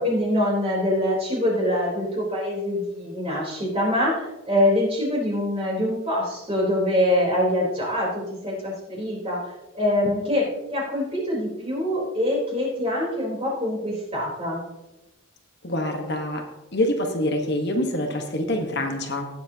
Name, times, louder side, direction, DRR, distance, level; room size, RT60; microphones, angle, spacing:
voice 1, 0.0-14.6, left 1 dB, 30° right, -4 dB, 3.8 m, -24 dB
voice 2, 15.6-16.4 16.7-19.3, left 1 dB, 50° left, 3 dB, 1.3 m, -25 dB
18.5 x 7.7 x 2.9 m, 1.0 s
head